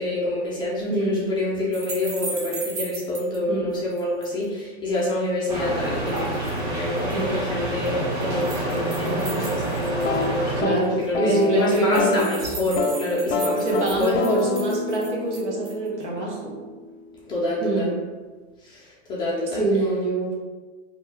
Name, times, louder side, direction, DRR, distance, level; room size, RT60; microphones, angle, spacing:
voice 1, 0.0-14.1 17.3-17.9 18.6-19.6, left 1 dB, 15° left, -7 dB, 0.4 m, -27 dB
voice 2, 0.9-1.2 3.5-3.7 7.1-7.4 10.6-12.4 13.6-16.5 17.6-17.9 19.5-20.3, right 2 dB, 90° right, -3 dB, 1.0 m, -25 dB
sound 1, 1.7-3.4 3.7-4.4 5.8-6.6 7.0-7.2 7.8-10.3 10.7-10.8 11.0-11.1 11.3-15.9, right 4 dB, 50° right, 0.8 m, -37 dB
sound 2, 5.5-10.6, right 1 dB, 65° right, 1.4 m, -27 dB
sound 3, 9.9-12.3 12.6-13.0 13.3-17.2, left 4 dB, 65° left, 0.6 m, -28 dB
2.7 x 2.2 x 3.3 m, 1.3 s
hypercardioid pair, 140°, 35 cm